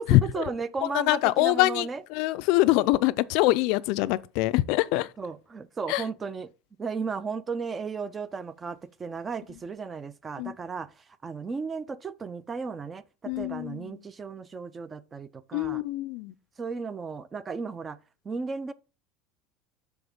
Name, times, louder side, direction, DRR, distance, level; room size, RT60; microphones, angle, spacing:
voice 1, 0.0-2.0 5.2-6.5 6.8-10.9 11.2-15.8 16.6-18.0 18.2-18.7, right 5 dB, 15° right, 0.4 m, -35 dB
voice 2, 0.9-5.1 5.9-6.0 10.4-10.5 13.3-13.9 15.5-16.3, left 18 dB, 60° left, 0.4 m, -24 dB
7.0 x 3.5 x 5.3 m
cardioid pair, 165°, 0 cm